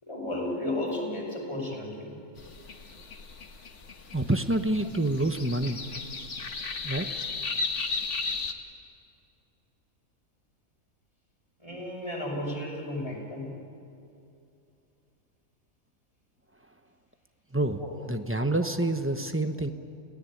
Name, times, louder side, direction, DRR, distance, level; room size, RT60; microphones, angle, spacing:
voice 1, 0.0-2.2 11.6-13.5 17.8-17.9, left 1 dB, 20° left, -3 dB, 6.1 m, -33 dB
sound 1, 2.4-8.5, left 4 dB, 55° left, 1.8 m, -35 dB
voice 2, 4.1-5.8 6.8-7.1 17.5-19.7, right 1 dB, 10° right, 8 dB, 0.9 m, -27 dB
29.5 x 17.0 x 9.8 m, 2.6 s
omnidirectional pair, 1.5 m